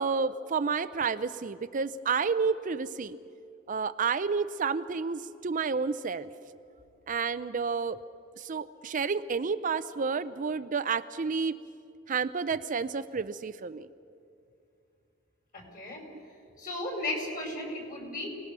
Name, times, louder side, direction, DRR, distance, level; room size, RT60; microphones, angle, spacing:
voice 1, 0.0-3.2 3.7-6.3 7.1-8.0 8.4-11.6 12.1-13.9, right 5 dB, 40° right, 12 dB, 0.5 m, -30 dB
voice 2, 15.5-16.0 16.6-18.3, left 2 dB, 45° left, 1 dB, 4.8 m, -35 dB
28.0 x 19.0 x 6.1 m, 2.5 s
head